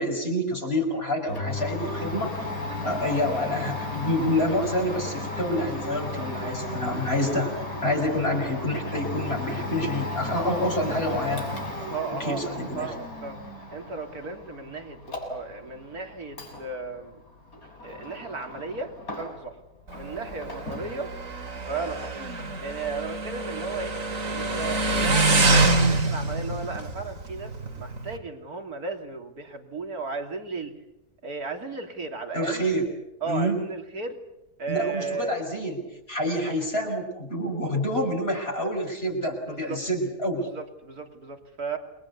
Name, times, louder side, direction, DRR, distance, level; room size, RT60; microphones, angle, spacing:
voice 1, 0.0-2.3 2.8-7.5 7.8-11.5 12.2-12.9 32.3-32.8 33.3-33.6 34.7-35.8 36.1-40.5, left 1 dB, 40° left, 1 dB, 5.8 m, -27 dB
Domestic sounds home sounds, 1.3-19.6 19.9-20.9, left 2 dB, 70° left, 7.5 m, -35 dB
voice 2, 11.8-13.4 13.7-17.2 17.8-19.6 19.9-21.1 21.7-22.1 22.6-24.0 24.3-30.8 31.2-32.7 33.2-34.2 34.6-35.5 39.5-39.8 40.4-41.8, right 4 dB, 85° right, 5 dB, 3.5 m, -35 dB
Motorcycle, 19.9-28.2, right 2 dB, 60° right, 2.9 m, -26 dB
29.0 x 22.5 x 8.3 m, 0.87 s
omnidirectional pair, 1.6 m